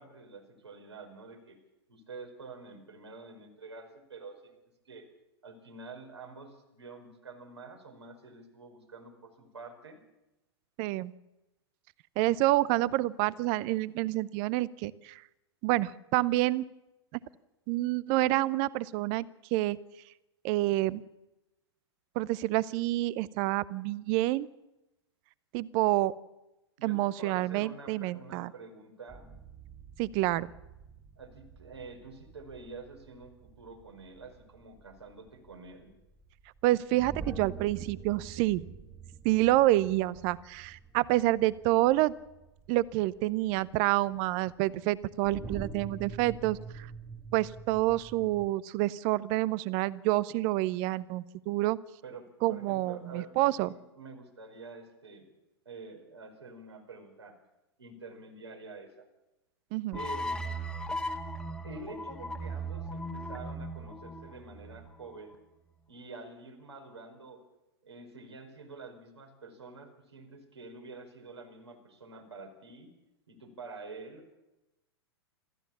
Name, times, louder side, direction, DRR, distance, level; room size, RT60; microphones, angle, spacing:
voice 1, 0.0-1.6 1.9-4.5 4.8-5.1 5.4-10.0 26.8-29.3 31.2-36.0 52.0-55.3 55.6-57.4 57.8-59.1 59.9-60.4 61.6-65.4 65.9-67.4 67.8-72.9 73.3-74.4, right 3 dB, 75° right, 3 dB, 5.1 m, -47 dB
voice 2, 10.8-11.1 12.2-15.2 15.6-16.6 17.7-19.3 19.5-19.8 20.4-21.0 22.2-24.5 25.5-26.1 26.8-28.5 30.0-30.5 36.6-38.6 39.2-42.1 42.7-46.9 47.3-51.8 52.4-53.7 59.7-60.0, right 17 dB, 40° right, 21 dB, 0.8 m, -28 dB
sound 1, 29.1-48.5, right 5 dB, 10° right, 1.5 m, -47 dB
sound 2, 59.9-65.1, right 1 dB, 5° left, 1.7 m, -37 dB
26.5 x 14.5 x 7.2 m, 0.97 s
figure-of-eight pair, 100°, 14 cm